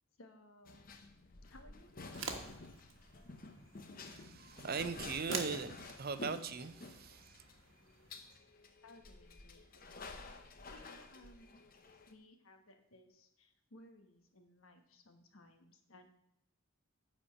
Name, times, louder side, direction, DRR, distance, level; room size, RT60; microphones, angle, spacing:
voice 1, 0.2-0.9 1.5-2.7 8.8-11.6 12.1-16.1, left 1 dB, 85° left, 6 dB, 1.3 m, -61 dB
sound 1, 0.7-12.1, left 3 dB, 45° left, 0.8 m, -50 dB
sound 2, 2.0-8.4, right 5 dB, 65° right, 1.3 m, -49 dB
voice 2, 4.0-7.4, right 5 dB, 45° right, 12 dB, 0.6 m, -40 dB
10.0 x 4.3 x 7.2 m, 0.78 s
head